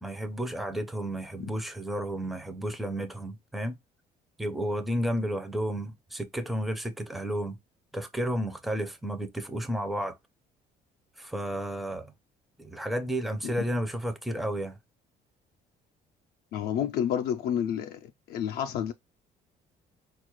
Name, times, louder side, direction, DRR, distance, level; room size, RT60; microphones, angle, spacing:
voice 1, 0.0-3.7 4.4-7.6 7.9-10.2 11.2-12.1 12.6-14.8, equal, ahead, 0.5 m, -32 dB
voice 2, 16.5-18.9, left 9 dB, 65° left, 0.4 m, -30 dB
4.0 x 2.3 x 2.9 m
cardioid pair, 110°, 17 cm